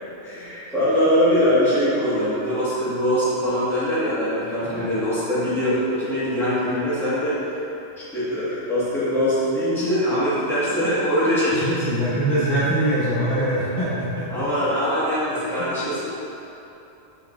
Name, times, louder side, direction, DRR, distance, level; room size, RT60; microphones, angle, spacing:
voice 1, 0.2-7.6 8.0-11.7 13.7-13.8 14.3-16.0, equal, ahead, -12 dB, 1.1 m, -22 dB
voice 2, 11.5-14.3 15.6-15.7, right 1 dB, 55° left, -10 dB, 1.2 m, -23 dB
6.4 x 3.2 x 2.3 m, 2.9 s
omnidirectional pair, 1.2 m